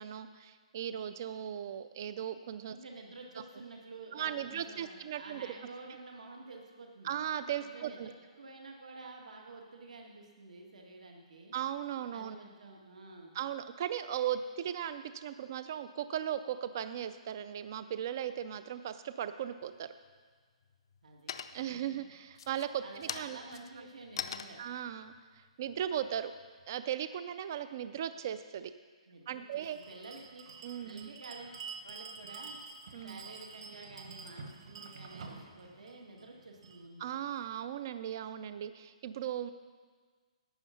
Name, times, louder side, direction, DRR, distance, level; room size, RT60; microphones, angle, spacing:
voice 1, 0.0-2.8 4.1-5.5 7.0-8.1 11.5-12.4 13.3-19.9 21.5-23.4 24.6-26.3 26.7-28.7 29.3-29.8 30.6-31.1 32.9-33.2 37.0-39.5, right 10 dB, 30° right, 12 dB, 0.3 m, -37 dB
voice 2, 2.7-7.2 7.5-11.5 12.1-13.4 21.0-22.1 22.8-24.6 29.1-30.4 30.8-31.5 31.8-32.6 33.0-37.1, right 3 dB, 85° right, 1 dB, 1.7 m, -50 dB
sound 1, 19.6-20.2 20.6-21.0 21.3-21.8 22.3-26.7, left 8 dB, 40° left, 0.4 m, -43 dB
Bell, 29.6-36.9, right 5 dB, 55° right, 1.3 m, -48 dB
11.0 x 8.2 x 5.7 m, 1.5 s
hypercardioid pair, 175°, 4 cm